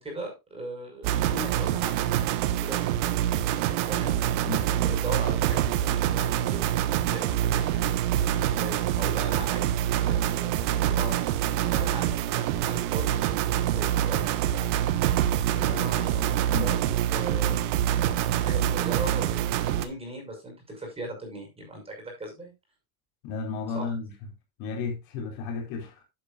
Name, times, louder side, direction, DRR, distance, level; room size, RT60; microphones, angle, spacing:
voice 1, 0.0-4.1 4.8-6.7 7.0-9.7 10.1-13.2 13.7-15.0 15.5-17.7 18.3-22.5 23.7-23.8, right 1 dB, 15° right, 6.1 m, -39 dB
sound 1, 1.0-19.8, right 11 dB, 65° right, 1.5 m, -25 dB
voice 2, 23.2-24.1 24.6-26.0, left 4 dB, 50° left, 4.3 m, -33 dB
11.0 x 10.5 x 2.5 m
supercardioid pair, 160°, 43 cm